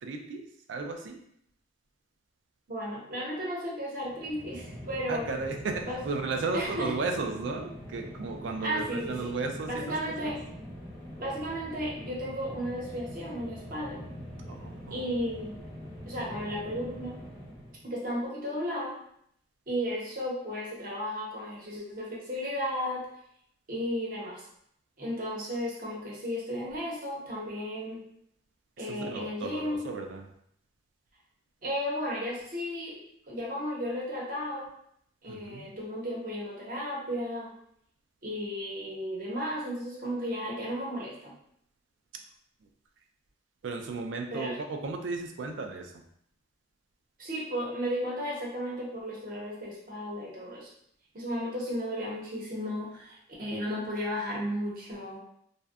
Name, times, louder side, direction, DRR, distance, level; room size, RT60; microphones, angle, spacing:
voice 1, 0.0-1.2 5.1-10.0 10.2-10.3 14.5-15.1 28.8-30.3 35.3-35.7 43.6-46.0, right 3 dB, 75° right, 4 dB, 0.4 m, -35 dB
voice 2, 2.7-5.3 5.9-6.0 6.5-6.9 8.6-9.3 9.7-10.4 11.2-14.0 14.9-15.6 16.1-17.2 17.8-19.0 19.7-23.1 23.7-24.5 25.0-28.0 28.8-29.9 31.6-34.7 35.2-37.5 38.2-41.3 44.3-44.6 47.2-50.7 51.1-55.2, equal, 50° right, -4 dB, 0.7 m, -34 dB
sound 1, 4.0-17.9, equal, 15° left, 0.5 m, -44 dB
2.6 x 2.1 x 2.3 m, 0.70 s
head